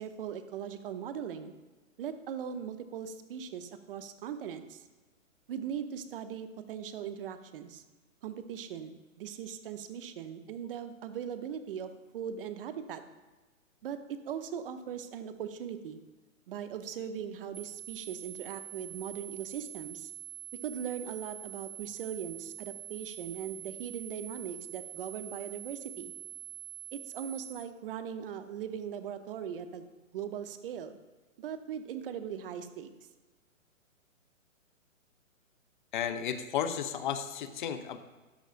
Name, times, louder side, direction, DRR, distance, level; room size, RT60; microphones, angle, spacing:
voice 1, 0.0-1.5 2.0-4.8 5.5-7.8 8.2-13.0 13.8-14.0 14.2-16.0 16.5-20.1 20.6-26.1 26.9-29.9 30.1-31.0 31.4-32.9, right 8 dB, 40° right, 9 dB, 0.8 m, -39 dB
sound 1, 17.5-27.5, right 13 dB, 80° right, 2.4 m, -45 dB
voice 2, 35.9-38.0, left 8 dB, 35° left, 10 dB, 0.7 m, -33 dB
13.0 x 9.8 x 2.6 m, 1.2 s
hypercardioid pair, 145°, 41 cm